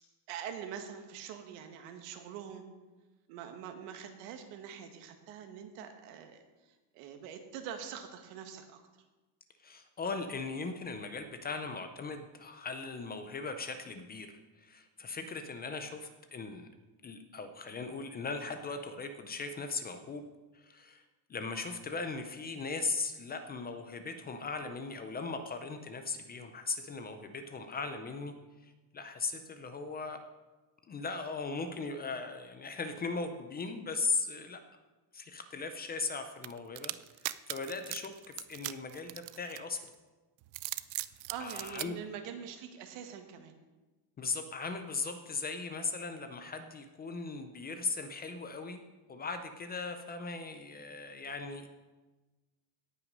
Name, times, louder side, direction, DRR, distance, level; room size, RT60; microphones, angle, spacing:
voice 1, 0.3-2.6 3.3-8.8 41.3-43.5, right 8 dB, 90° right, 6 dB, 1.7 m, -44 dB
voice 2, 9.6-16.7 17.0-20.2 20.5-21.0 21.3-28.3 28.6-30.2 30.9-34.6 35.1-39.8 41.4-42.0 44.2-48.8 49.1-51.7, left 4 dB, 20° left, 7 dB, 0.4 m, -38 dB
sound 1, 36.4-39.9 40.4-41.9, right 20 dB, 70° right, 0.6 m, -39 dB
17.5 x 5.9 x 5.3 m, 1.2 s
cardioid pair, 170°, 49 cm